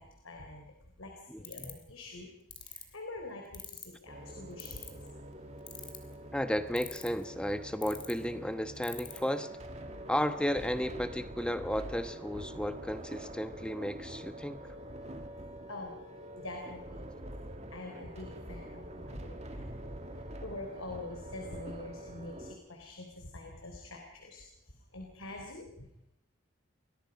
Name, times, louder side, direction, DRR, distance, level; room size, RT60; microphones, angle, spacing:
voice 1, 0.0-2.3 2.6-5.2 15.7-16.0 16.3-17.0 17.7-26.1, left 2 dB, 80° left, 3 dB, 3.9 m, -46 dB
voice 2, 1.3-1.7 6.3-9.5 10.1-14.6, equal, 5° left, 9 dB, 1.1 m, -33 dB
sound 1, 1.4-1.8 2.5-2.8 3.5-4.0 4.6-5.1 5.7-6.1 6.8-7.2 7.8-8.1 8.8-9.2, left 9 dB, 25° left, 2.9 m, -43 dB
sound 2, 4.1-22.6, right 1 dB, 30° right, 2.1 m, -45 dB
30.0 x 22.0 x 5.4 m, 0.79 s
head